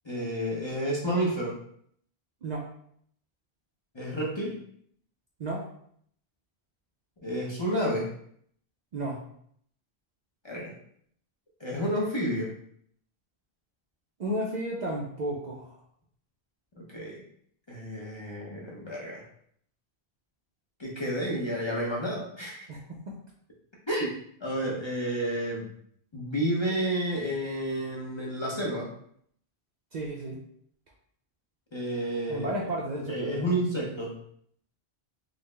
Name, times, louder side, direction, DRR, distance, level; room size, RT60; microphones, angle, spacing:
voice 1, 0.0-1.6 3.9-4.5 7.2-8.1 10.4-10.7 11.6-12.5 16.8-17.2 17.7-19.2 20.8-22.7 23.9-25.7 26.1-28.9 31.7-32.5 33.1-34.1, right 1 dB, 35° left, -4 dB, 0.6 m, -30 dB
voice 2, 14.2-15.8 22.7-23.2 29.9-30.4 32.3-33.5, right 1 dB, 55° right, -2 dB, 0.5 m, -33 dB
3.9 x 2.0 x 3.1 m, 0.65 s
omnidirectional pair, 1.1 m